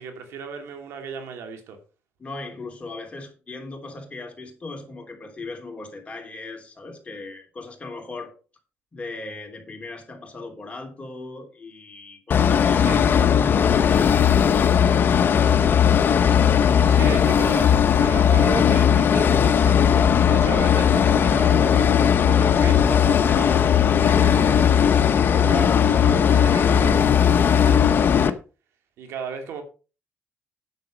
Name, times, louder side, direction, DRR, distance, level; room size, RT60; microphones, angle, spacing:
voice 1, 0.0-1.8 12.7-13.1 16.8-24.7 25.3-28.4 29.0-29.6, right 6 dB, 85° right, 2.4 m, -35 dB
voice 2, 2.2-8.3 8.9-13.1 13.6-16.5, left 3 dB, 30° left, 3.3 m, -38 dB
sound 1, 12.3-28.3, left 8 dB, 55° left, 0.9 m, -18 dB
9.5 x 7.0 x 5.1 m
cardioid pair, 95°, 4 cm